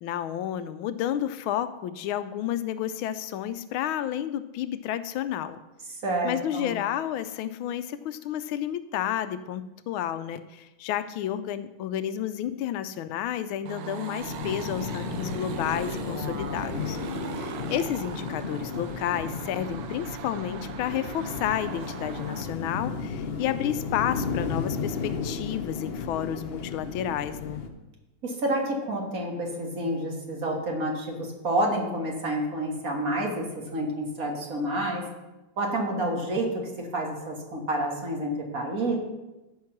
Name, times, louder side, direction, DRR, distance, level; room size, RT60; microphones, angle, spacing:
voice 1, 0.0-5.6 6.2-17.0 17.4-27.6, left 11 dB, 85° left, 12 dB, 1.4 m, -31 dB
voice 2, 6.0-6.7 28.2-35.0 35.6-39.0, right 1 dB, 45° right, 0 dB, 2.2 m, -29 dB
sound 1, 13.7-22.5, right 8 dB, 90° right, 1.5 m, -39 dB
sound 2, 14.2-27.7, left 5 dB, 55° left, 0.6 m, -34 dB
14.0 x 4.7 x 6.0 m, 1.0 s
omnidirectional pair, 2.2 m